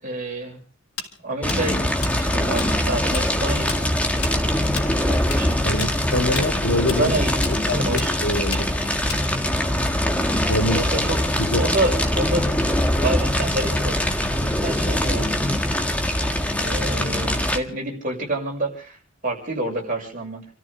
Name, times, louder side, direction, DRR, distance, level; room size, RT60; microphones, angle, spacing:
voice 1, 0.0-0.6 1.2-4.0 5.1-5.9 6.9-8.2 10.3-11.2 11.4-12.7 13.0-14.0 14.3-15.4 16.6-20.4, right 2 dB, 40° right, 1 dB, 6.4 m, -28 dB
Tools, 1.0-2.7 3.0-3.3 3.5-9.6, left 6 dB, 85° left, 3.6 m, -33 dB
Fire, 1.4-17.6, left 1 dB, 5° left, 1.7 m, -22 dB
voice 2, 5.6-7.1 7.5-8.7 10.5-10.8 11.4-11.7, left 1 dB, 65° left, 3 dB, 2.5 m, -25 dB
30.0 x 13.5 x 3.4 m, 0.41 s
head